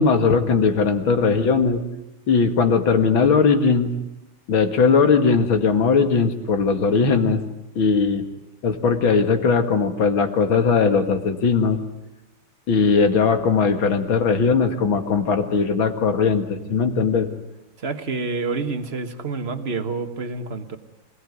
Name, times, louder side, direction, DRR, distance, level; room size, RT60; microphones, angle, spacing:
voice 1, 0.0-1.8 2.3-3.9 4.5-7.4 7.8-8.3 8.6-11.8 12.7-17.3, left 5 dB, 65° left, 7 dB, 2.6 m, -19 dB
voice 2, 17.8-20.8, right 4 dB, 35° right, 8 dB, 1.4 m, -28 dB
26.5 x 18.0 x 9.6 m, 0.90 s
omnidirectional pair, 2.4 m